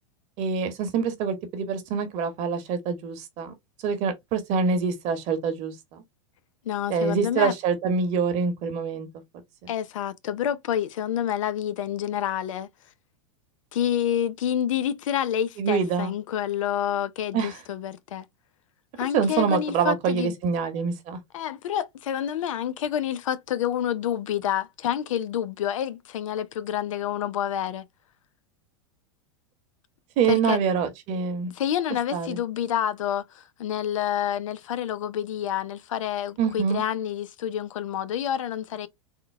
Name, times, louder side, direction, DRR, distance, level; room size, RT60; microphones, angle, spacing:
voice 1, 0.4-3.5 3.8-6.0 6.9-9.1 9.6-9.7 15.6-16.1 17.3-17.5 19.1-21.2 30.2-31.5 32.1-32.4 36.4-36.8, right 6 dB, 45° right, 1.3 m, -25 dB
voice 2, 6.6-7.5 9.7-12.7 13.7-18.3 19.0-20.3 21.3-27.8 30.3-30.6 31.5-38.9, left 10 dB, 85° left, 0.6 m, -28 dB
3.7 x 2.3 x 3.3 m
hypercardioid pair, 115°, 16 cm